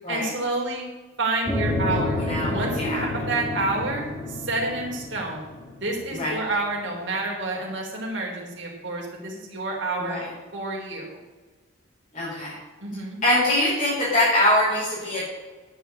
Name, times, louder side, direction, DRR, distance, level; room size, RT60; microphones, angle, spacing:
voice 1, 0.1-0.9 1.2-2.2 2.5-10.2 10.5-11.2 12.8-13.2, right 2 dB, 60° right, -1 dB, 3.7 m, -29 dB
sound 1, 1.5-6.3, left 2 dB, 10° left, 1.9 m, -29 dB
voice 2, 1.9-3.1 6.1-6.4 10.0-10.2 12.1-12.6 13.2-15.2, left 1 dB, 35° left, -9 dB, 5.1 m, -23 dB
11.0 x 7.9 x 7.9 m, 1.3 s
head